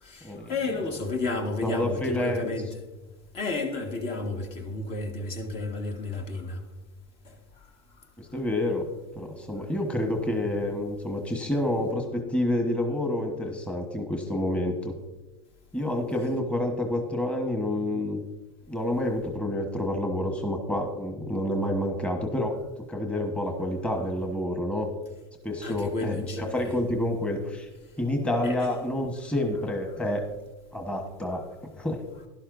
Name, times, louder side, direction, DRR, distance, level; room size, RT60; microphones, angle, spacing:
voice 1, 0.0-2.8 3.3-6.6 7.2-7.3 25.6-26.8 28.4-28.7 31.3-31.4, left 3 dB, 50° left, 1.6 m, -32 dB
voice 2, 1.6-2.5 8.2-15.0 15.7-18.2 18.7-22.6 22.9-24.9 25.4-27.7 28.0-30.2 30.7-31.4 31.7-32.0, left 1 dB, 10° left, 1.3 m, -28 dB
11.5 x 11.5 x 2.6 m
hypercardioid pair, 100°, 13 cm